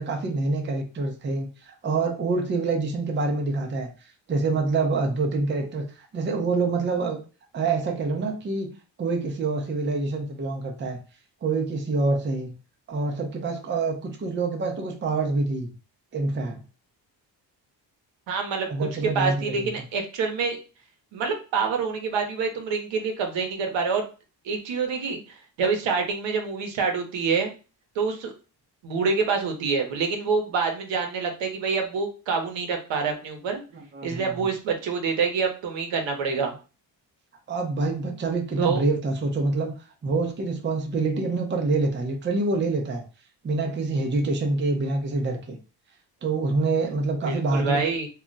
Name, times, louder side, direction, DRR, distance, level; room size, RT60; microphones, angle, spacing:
voice 1, 0.0-3.9 4.3-7.2 7.5-8.7 9.0-11.0 11.4-12.6 12.9-15.7 16.1-16.6 18.7-19.7 33.7-34.3 37.5-39.7 40.0-43.0 43.4-45.6 46.2-47.8, right 3 dB, 25° right, 2 dB, 0.5 m, -26 dB
voice 2, 18.3-18.9 19.1-20.6 21.1-24.1 24.4-27.5 27.9-28.3 28.8-33.6 34.0-36.5 38.6-38.8 47.2-48.1, right 5 dB, 85° right, 4 dB, 0.8 m, -26 dB
2.3 x 2.1 x 3.8 m, 0.34 s
cardioid pair, 125°, 44 cm